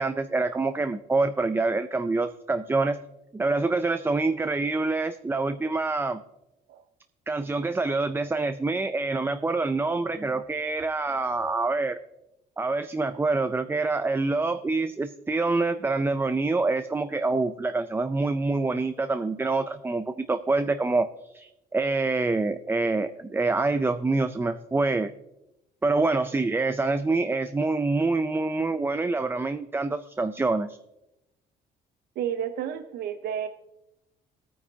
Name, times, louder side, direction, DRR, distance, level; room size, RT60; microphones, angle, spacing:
voice 1, 0.0-3.0 3.3-6.2 7.3-12.0 12.6-25.1 25.8-30.8, right 3 dB, 15° right, 10 dB, 0.5 m, -26 dB
voice 2, 32.2-33.5, right 9 dB, 70° right, 8 dB, 0.7 m, -31 dB
18.0 x 9.3 x 2.8 m, 0.91 s
cardioid pair, 110°, 17 cm